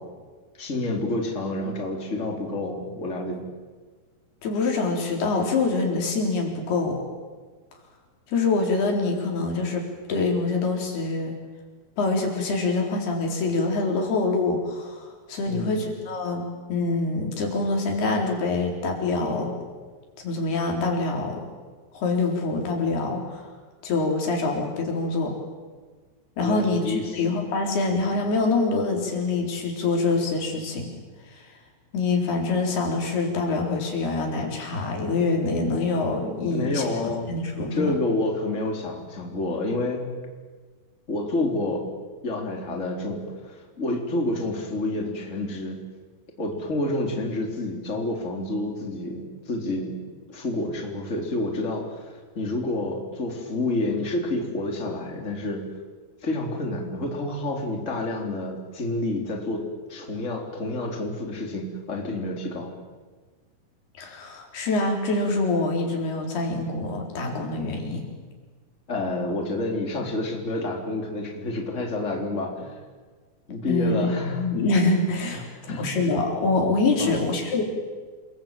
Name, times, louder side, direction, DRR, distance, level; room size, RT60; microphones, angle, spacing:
voice 1, 0.5-3.4 15.4-15.8 26.4-27.2 36.5-37.3 37.7-40.1 41.1-42.0 42.2-45.8 46.4-50.0 50.3-55.7 56.2-62.7 68.9-72.8 73.5-74.5 75.5-75.9 76.9-77.2, left 2 dB, 20° left, 2 dB, 3.8 m, -29 dB
voice 2, 4.4-7.0 8.3-11.3 12.0-19.5 20.2-21.5 21.9-23.5 23.8-25.4 26.4-30.9 31.3-31.4 31.9-38.0 64.0-68.0 73.7-75.4 75.7-77.6, left 3 dB, 90° left, 1 dB, 6.3 m, -25 dB
28.0 x 22.0 x 9.1 m, 1.4 s
omnidirectional pair, 4.4 m